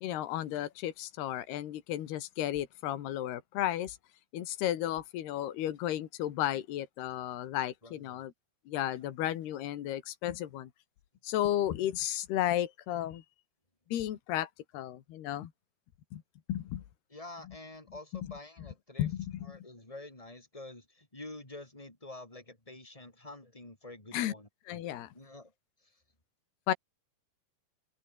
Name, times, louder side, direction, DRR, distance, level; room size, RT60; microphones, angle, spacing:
voice 1, 0.0-4.0 4.3-8.3 8.7-10.7 11.2-13.2 13.9-15.5 16.1-16.2 16.5-16.8 18.1-18.3 19.0-19.4 24.1-24.3 24.7-25.1 26.7-26.8, left 12 dB, 80° left, 3.8 m, -33 dB
voice 2, 7.8-8.2 17.1-19.1 19.4-24.5 25.1-25.5, left 2 dB, 10° left, 4.8 m, -48 dB
omnidirectional pair, 4.6 m